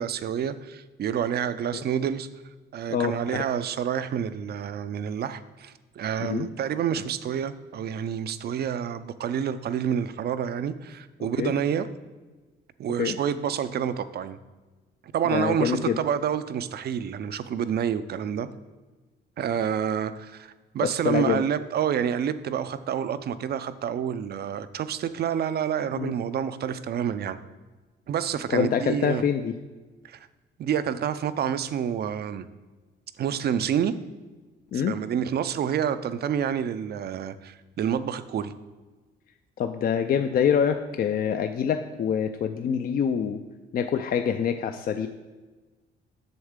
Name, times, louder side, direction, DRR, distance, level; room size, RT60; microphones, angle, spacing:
voice 1, 0.0-2.3 2.7-11.9 12.8-14.4 15.1-18.5 19.4-27.4 28.1-29.2 30.0-30.3 30.6-32.5 33.2-33.9 34.7-38.5, right 8 dB, 55° right, 13 dB, 0.4 m, -28 dB
voice 2, 2.9-3.4 6.2-6.5 11.4-11.5 13.0-13.2 15.3-16.0 20.8-21.4 26.0-26.1 28.5-29.5 34.7-35.0 39.6-43.4 43.7-45.1, left 8 dB, 50° left, 7 dB, 0.4 m, -25 dB
7.9 x 6.3 x 3.6 m, 1.3 s
cardioid pair, 90°, 20 cm